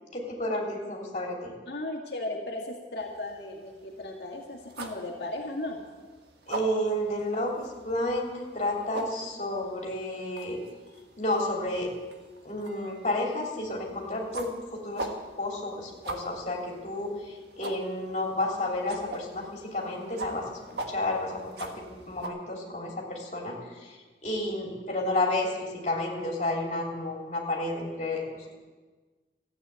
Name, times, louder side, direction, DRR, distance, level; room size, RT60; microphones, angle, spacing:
voice 1, 0.1-1.5 6.5-10.6 11.2-11.9 12.4-15.1 15.4-20.6 20.9-28.6, left 1 dB, 40° left, -1 dB, 3.1 m, -31 dB
voice 2, 1.7-5.8, left 2 dB, 70° left, -1 dB, 2.0 m, -36 dB
sound 1, 3.0-22.3, right 2 dB, 65° right, 1.6 m, -43 dB
14.5 x 8.9 x 8.3 m, 1.3 s
head